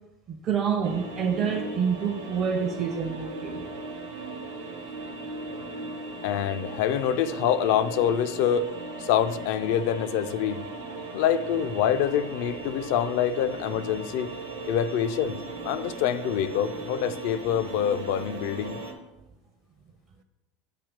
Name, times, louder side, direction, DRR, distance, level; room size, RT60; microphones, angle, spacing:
voice 1, 0.3-3.7, right 6 dB, 40° right, 0.6 m, -27 dB
sound 1, 0.8-18.9, right 3 dB, 80° right, 1.0 m, -38 dB
voice 2, 6.2-8.7 9.0-10.6 11.1-14.3 14.7-15.4 15.6-18.8, left 9 dB, 60° left, 0.4 m, -26 dB
8.4 x 2.8 x 5.0 m
figure-of-eight pair, 75°, 0 cm